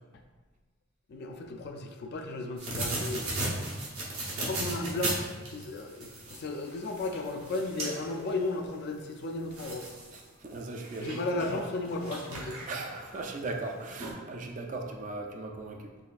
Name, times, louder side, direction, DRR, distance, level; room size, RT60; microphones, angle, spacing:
voice 1, 1.1-3.3 4.3-5.2 5.5-9.9 11.0-12.6, left 2 dB, 50° left, 4 dB, 0.3 m, -34 dB
sound 1, 2.6-8.4 9.0-9.1 9.5-10.2 10.5-12.9 13.7-13.8 14.0-14.1, right 2 dB, 90° right, 0.9 m, -36 dB
voice 2, 10.4-11.5 12.7-15.9, right 3 dB, 35° right, 2 dB, 0.3 m, -38 dB
4.1 x 3.1 x 2.4 m, 1.4 s
head